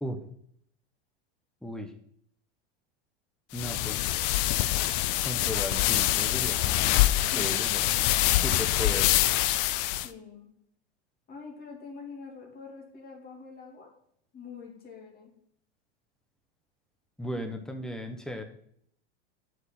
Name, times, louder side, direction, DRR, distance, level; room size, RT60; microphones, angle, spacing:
voice 1, 1.6-1.9 3.5-4.1 5.2-7.0 7.4-9.1 17.2-18.4, equal, ahead, 6 dB, 1.1 m, -36 dB
sound 1, 3.5-10.1, left 15 dB, 55° left, 0.6 m, -25 dB
voice 2, 10.0-10.5 11.3-13.9 14.3-15.3, left 5 dB, 25° left, -1 dB, 2.9 m, -45 dB
7.9 x 5.6 x 7.1 m, 0.67 s
hypercardioid pair, 115°, 33 cm